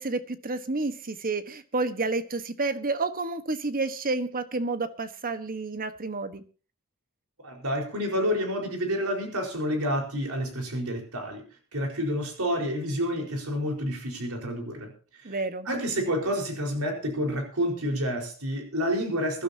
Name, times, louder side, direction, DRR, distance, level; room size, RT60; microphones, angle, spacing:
voice 1, 0.0-6.4 15.2-15.7, right 3 dB, 40° right, 11 dB, 1.4 m, -30 dB
voice 2, 7.4-11.4 11.7-14.9 15.2-15.4 15.6-19.4, equal, 75° right, 3 dB, 4.7 m, -29 dB
24.0 x 12.0 x 2.9 m, 0.37 s
head